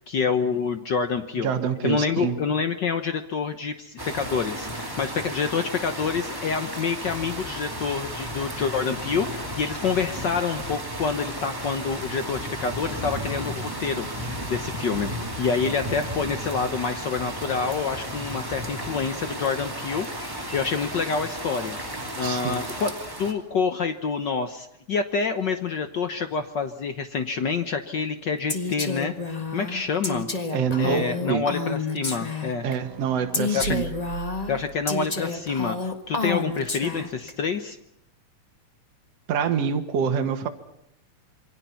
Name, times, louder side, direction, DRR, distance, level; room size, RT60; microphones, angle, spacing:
voice 1, 0.0-1.5 1.8-15.1 15.4-21.8 22.2-22.9 23.2-30.3 30.8-32.6 33.5-33.8 34.5-37.8, left 5 dB, 75° left, 8 dB, 1.0 m, -27 dB
voice 2, 1.4-2.4 22.2-22.7 30.5-31.4 32.6-33.8 39.3-40.5, right 7 dB, 60° right, 5 dB, 2.5 m, -26 dB
sound 1, 4.0-23.3, right 1 dB, 10° right, 2.2 m, -34 dB
Female speech woman speaking, 28.5-32.7 33.3-37.3, left 3 dB, 30° left, 0.7 m, -30 dB
sound 2, 32.4-35.1 36.0-37.0, right 7 dB, 75° right, 2.5 m, -39 dB
27.0 x 24.0 x 5.8 m, 0.75 s
omnidirectional pair, 3.5 m